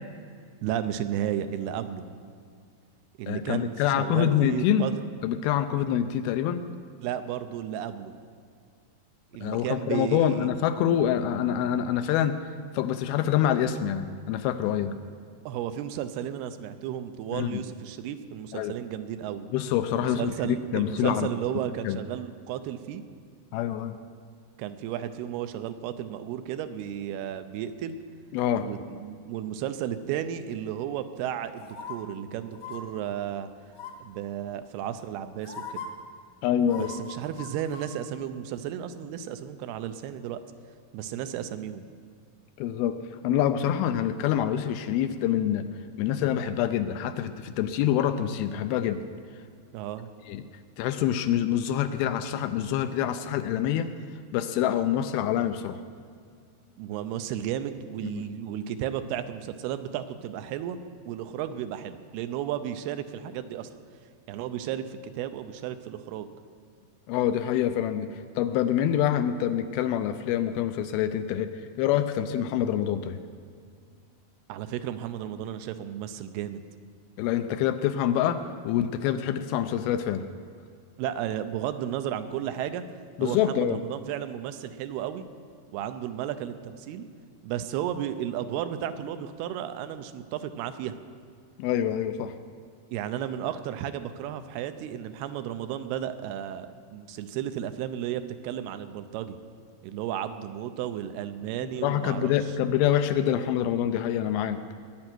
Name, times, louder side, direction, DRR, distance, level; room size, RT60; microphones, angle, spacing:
voice 1, 0.6-2.0 3.2-4.9 5.8-5.9 7.0-8.1 9.3-10.5 15.5-19.5 19.9-23.0 24.6-28.0 28.6-33.5 34.0-35.8 36.7-40.4 40.9-41.9 49.7-50.1 56.8-60.8 61.1-63.7 64.3-66.3 74.5-76.6 81.0-82.8 83.2-85.3 85.7-87.0 87.4-91.0 92.9-99.4 99.8-102.3, right 10 dB, 85° right, 10 dB, 2.6 m, -33 dB
voice 2, 3.3-4.9 5.2-6.7 9.4-12.4 12.7-15.0 17.3-17.6 18.5-18.8 19.5-21.3 21.8-22.0 23.5-24.0 28.3-28.7 36.4-36.9 42.6-43.0 43.2-45.7 46.0-49.0 50.3-50.4 50.8-53.9 54.3-55.8 58.0-58.2 67.1-68.1 68.4-71.5 71.8-73.2 77.2-80.2 83.2-83.8 91.6-92.3 101.8-104.6, left 10 dB, 80° left, 10 dB, 2.3 m, -26 dB
sound 1, 31.6-32.0 32.5-32.8 33.7-34.1 35.0-35.1 35.4-35.9 36.6-37.9 38.2-38.3, left 7 dB, 60° left, 1.4 m, -39 dB
20.0 x 9.0 x 6.1 m, 2.2 s
omnidirectional pair, 4.6 m